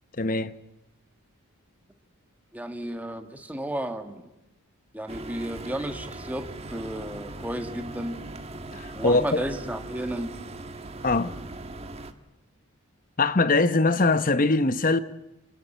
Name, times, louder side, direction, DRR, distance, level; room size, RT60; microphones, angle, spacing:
voice 1, 0.2-0.5 8.7-9.4 11.0-11.3 13.2-15.0, left 3 dB, 40° left, 0.9 m, -22 dB
voice 2, 2.5-4.2 4.9-8.2 8.9-10.3, right 1 dB, 5° right, 1.6 m, -33 dB
sound 1, 5.1-12.1, right 2 dB, 30° right, 1.3 m, -39 dB
28.5 x 21.0 x 9.1 m
head